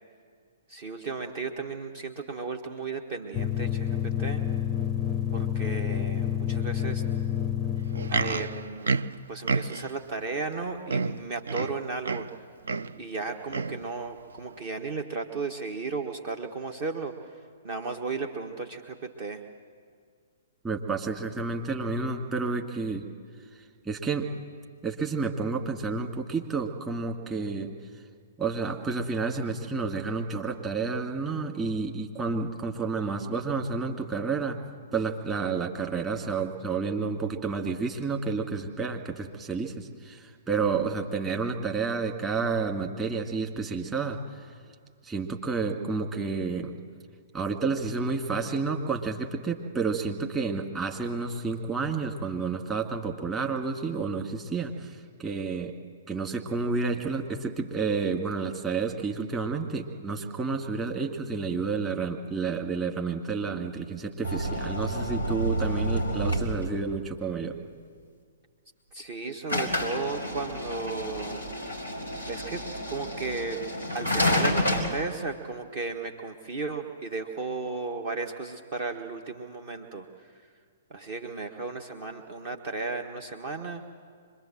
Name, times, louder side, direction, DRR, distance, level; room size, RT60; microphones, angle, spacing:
voice 1, 0.7-4.4 5.3-7.0 8.1-9.0 9.3-12.5 13.0-17.4 17.6-19.4 68.9-71.4 72.3-73.6 73.9-80.3 80.9-83.8, right 4 dB, 40° right, 4 dB, 1.3 m, -35 dB
sound 1, 3.3-8.7, left 10 dB, 20° left, 0.5 m, -29 dB
Livestock farm animals working animals, 7.8-10.0 10.6-10.7 10.9-12.4 12.6-13.0 13.5-13.8 14.5-14.6, right 4 dB, 65° right, 0.6 m, -30 dB
voice 2, 20.6-23.1 23.8-24.3 24.8-27.7 28.4-34.6 34.9-44.5 45.0-46.8 47.3-55.7 56.1-67.6, right 4 dB, 15° right, 2 dB, 2.1 m, -30 dB
sound 2, 64.2-67.0 69.5-74.9, equal, 85° right, 4.3 m, -29 dB
25.5 x 22.0 x 7.7 m, 2.1 s
figure-of-eight pair, 115°, 0 cm